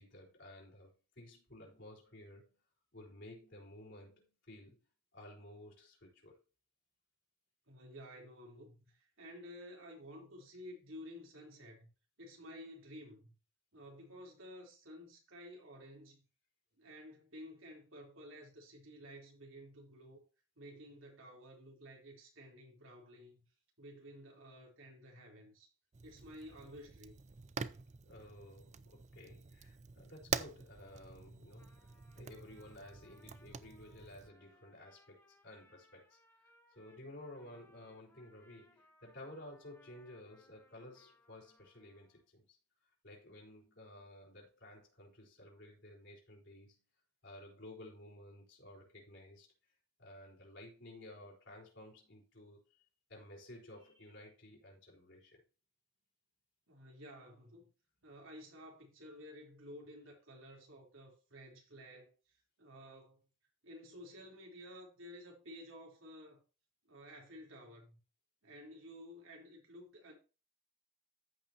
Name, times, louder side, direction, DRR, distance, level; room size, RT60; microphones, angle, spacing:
voice 1, 0.0-2.6 2.9-4.9 5.1-6.4 28.0-46.8 47.2-49.7 50.0-55.4, left 1 dB, 60° left, 4.5 m, -54 dB
voice 2, 7.7-11.9 12.2-13.3 13.7-16.3 16.8-20.2 20.6-23.5 23.8-25.7 26.0-27.2 56.7-57.7 58.0-63.2 63.6-66.4 66.8-68.0 68.4-70.1, equal, 80° right, 3.8 m, -53 dB
Fire, 25.9-34.3, right 6 dB, 35° right, 0.4 m, -46 dB
Trumpet, 31.4-42.2, left 1 dB, 10° left, 2.1 m, -68 dB
14.0 x 5.6 x 2.9 m
head